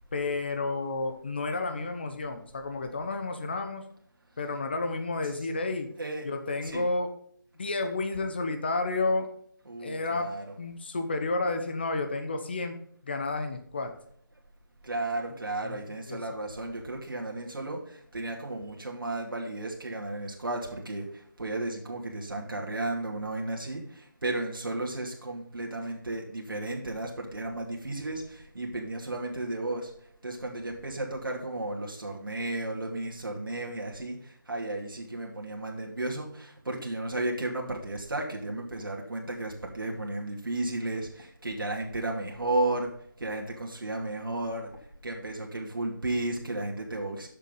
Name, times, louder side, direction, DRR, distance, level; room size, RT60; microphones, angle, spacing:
voice 1, 0.1-3.8 4.4-5.9 6.2-7.1 7.6-9.3 9.8-10.3 10.6-12.8 13.0-13.9 15.3-15.8 16.1-16.2, left 3 dB, 30° left, 7 dB, 1.0 m, -31 dB
voice 2, 9.7-10.4 14.8-29.9 30.2-42.9 43.2-44.7 45.0-47.3, right 2 dB, 85° right, 0 dB, 2.5 m, -34 dB
7.4 x 7.3 x 5.5 m, 0.64 s
figure-of-eight pair, 175°, 11 cm